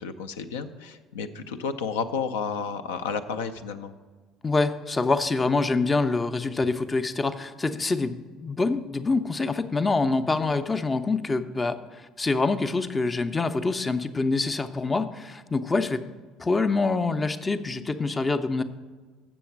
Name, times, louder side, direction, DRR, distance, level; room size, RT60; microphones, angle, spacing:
voice 1, 0.0-3.9, left 6 dB, 75° left, 8 dB, 0.4 m, -31 dB
voice 2, 4.4-16.0 16.4-18.6, left 3 dB, 25° left, 10 dB, 0.5 m, -25 dB
7.1 x 6.9 x 6.0 m, 1.4 s
figure-of-eight pair, 60°, 0 cm